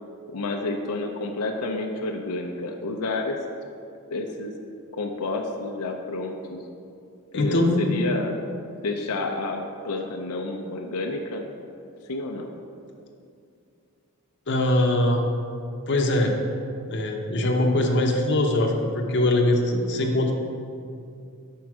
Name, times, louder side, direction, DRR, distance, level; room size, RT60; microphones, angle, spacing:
voice 1, 0.3-3.4 4.1-4.6 4.9-6.6 7.3-8.4 8.8-11.5 12.1-12.5, left 2 dB, 90° left, 3 dB, 0.5 m, -30 dB
voice 2, 7.3-7.9 14.5-15.2 15.9-16.3 16.9-20.3, left 1 dB, 50° left, 1 dB, 0.7 m, -22 dB
5.2 x 4.6 x 5.9 m, 2.4 s
head